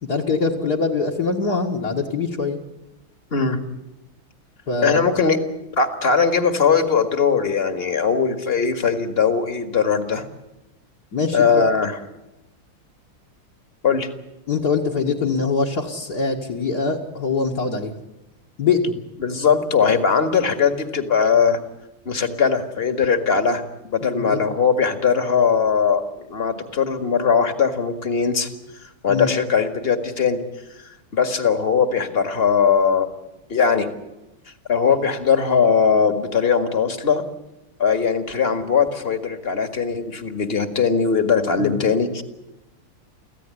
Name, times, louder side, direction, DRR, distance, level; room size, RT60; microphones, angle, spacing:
voice 1, 0.0-2.6 4.7-5.0 11.1-11.6 14.5-17.9 18.6-18.9 24.0-24.4 29.1-29.3 41.6-41.7, left 4 dB, 50° left, 4 dB, 2.3 m, -23 dB
voice 2, 4.8-5.4 5.8-10.3 11.3-12.0 13.8-14.1 19.2-21.6 22.1-28.5 29.0-30.4 31.1-33.1 33.5-33.9 34.7-37.2 37.8-42.2, left 6 dB, 30° left, 8 dB, 2.0 m, -20 dB
25.5 x 15.5 x 9.7 m, 0.98 s
omnidirectional pair, 2.4 m